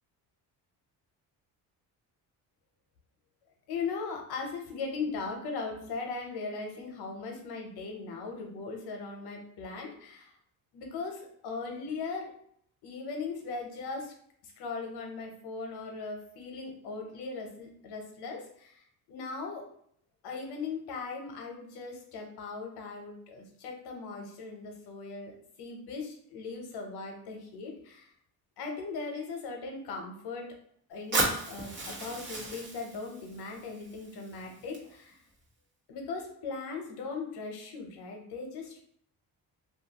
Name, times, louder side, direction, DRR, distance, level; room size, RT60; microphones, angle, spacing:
voice 1, 3.7-10.3 10.7-12.3 12.8-14.1 14.4-19.6 20.2-28.1 28.6-30.5 30.9-35.2 35.9-38.8, left 4 dB, 85° left, 2 dB, 0.8 m, -39 dB
Fire, 31.1-35.1, right 2 dB, 30° right, 0.9 m, -35 dB
2.5 x 2.3 x 2.8 m, 0.65 s
cardioid pair, 125°, 38 cm